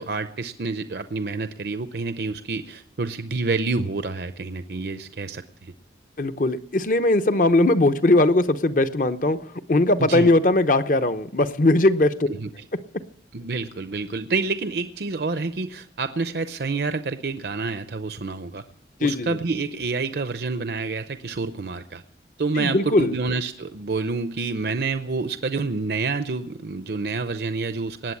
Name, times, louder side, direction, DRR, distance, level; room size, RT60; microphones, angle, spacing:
voice 1, 0.0-5.7 10.0-10.3 12.3-12.6 13.3-18.6 19.0-22.0 22.4-28.1, right 3 dB, 65° right, 10 dB, 0.6 m, -28 dB
voice 2, 6.2-9.4 9.7-12.3 19.0-19.4 22.6-23.1, left 2 dB, 45° left, 11 dB, 0.8 m, -19 dB
19.5 x 8.0 x 8.4 m, 0.69 s
head